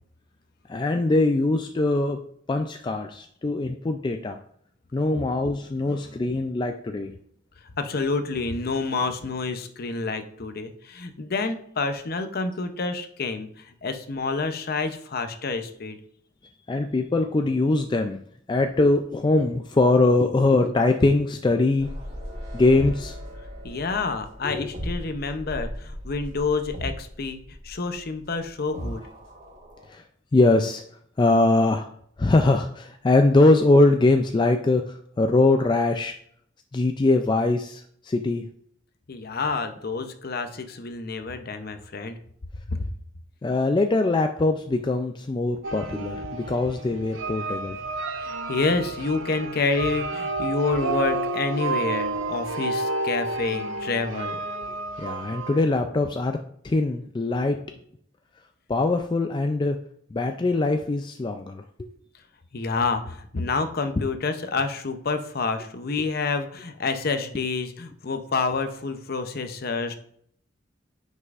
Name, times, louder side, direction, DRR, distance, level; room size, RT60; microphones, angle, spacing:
voice 1, 0.7-2.2 2.5-4.4 4.9-7.1 16.7-18.2 18.5-21.9 22.5-23.1 24.4-24.7 29.9-30.0 30.3-30.8 31.2-31.9 32.2-36.1 36.7-38.5 43.4-47.8 55.0-56.4 56.6-57.6 58.7-59.8 60.1-61.9, left 2 dB, 25° left, 5 dB, 0.3 m, -22 dB
voice 2, 7.8-16.0 23.6-29.0 39.1-42.2 42.7-42.9 48.2-54.4 62.5-70.0, left 4 dB, 50° left, 8 dB, 0.7 m, -28 dB
sound 1, 21.8-29.9, equal, 35° right, 2.7 m, -37 dB
sound 2, 45.6-55.6, right 2 dB, 85° right, 0.7 m, -30 dB
9.5 x 5.5 x 2.5 m, 0.64 s
head